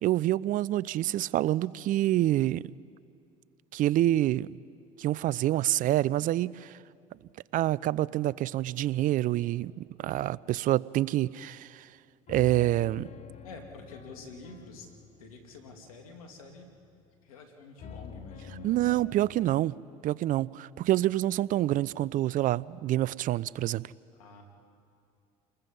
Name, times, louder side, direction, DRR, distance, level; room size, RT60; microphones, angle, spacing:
voice 1, 0.0-2.7 3.7-4.5 5.0-6.7 7.5-11.9 12.3-13.1 18.6-19.7 20.0-23.8, right 14 dB, 50° right, 22 dB, 0.5 m, -27 dB
sound 1, 9.4-10.0 12.3-17.1 17.8-19.6, left 8 dB, 40° left, 1.0 m, -48 dB
voice 2, 13.4-14.9 15.2-16.7 17.2-18.8 24.1-24.4, left 2 dB, 90° left, 4 dB, 2.6 m, -47 dB
29.0 x 20.5 x 5.4 m, 2.4 s
hypercardioid pair, 75°, 18 cm